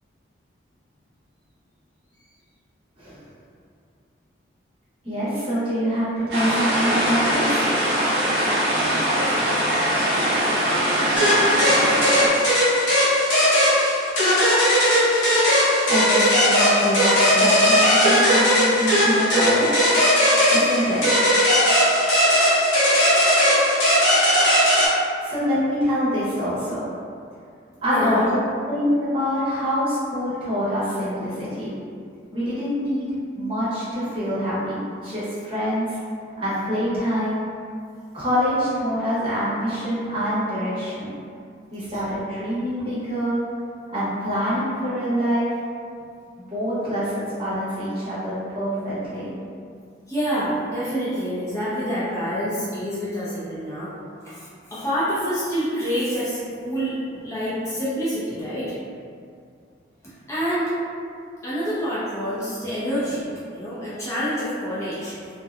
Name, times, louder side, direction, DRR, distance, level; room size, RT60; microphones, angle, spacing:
voice 1, 5.0-7.6 15.8-19.7 20.5-21.2 25.2-26.9 27.8-28.4 28.7-31.7 32.3-33.1 33.3-36.0 36.4-37.4 38.1-41.2 41.7-43.4 43.9-45.5 46.5-49.3, equal, 25° right, -11 dB, 0.8 m, -25 dB
sound 1, 6.3-12.3, equal, 55° right, 0.6 m, -21 dB
sound 2, 11.2-24.9, equal, 70° left, 0.8 m, -18 dB
voice 2, 27.9-28.3 41.9-42.0 50.1-53.9 54.2-57.0 57.2-58.8 60.0-60.7 61.4-65.2, equal, 15° left, -11 dB, 0.6 m, -27 dB
2.7 x 2.2 x 2.4 m, 2.3 s
head